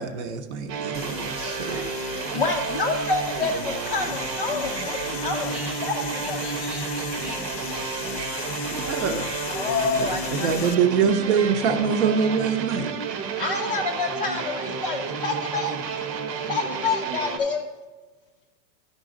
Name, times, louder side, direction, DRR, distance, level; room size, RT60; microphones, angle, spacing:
voice 1, 0.0-1.3 8.8-9.2 10.3-12.9, right 6 dB, 45° right, 7 dB, 0.7 m, -23 dB
sound 1, 0.7-17.4, right 5 dB, 90° right, 1.1 m, -31 dB
sound 2, 0.9-10.8, left 10 dB, 80° left, 0.7 m, -37 dB
voice 2, 1.4-3.1 5.3-8.5 8.9-9.2 13.3-13.9, right 1 dB, ahead, -2 dB, 0.8 m, -42 dB
voice 3, 2.3-5.5 5.8-6.4 9.5-10.6 13.4-15.7 16.5-17.7, left 4 dB, 35° left, 2 dB, 0.4 m, -28 dB
12.5 x 5.2 x 3.7 m, 1.3 s
supercardioid pair, 165°, 50 cm